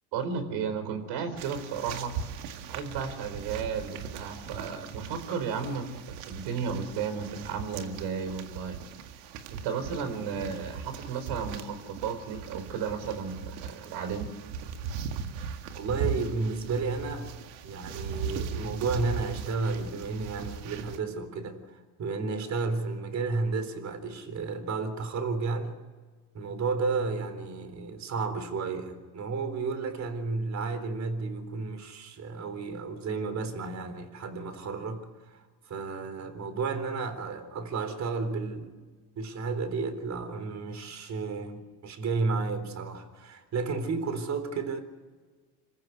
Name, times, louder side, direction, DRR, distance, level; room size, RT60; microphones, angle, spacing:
voice 1, 0.1-2.1 2.7-8.8 9.5-14.3, right 6 dB, 70° right, 4.7 m, -34 dB
sound 1, 1.4-21.0, right 6 dB, 85° right, 2.1 m, -39 dB
voice 2, 15.8-17.3 17.6-25.7 26.3-38.7 39.2-44.8, right 4 dB, 40° right, 3.9 m, -32 dB
27.0 x 15.0 x 9.6 m
supercardioid pair, 110°, 42 cm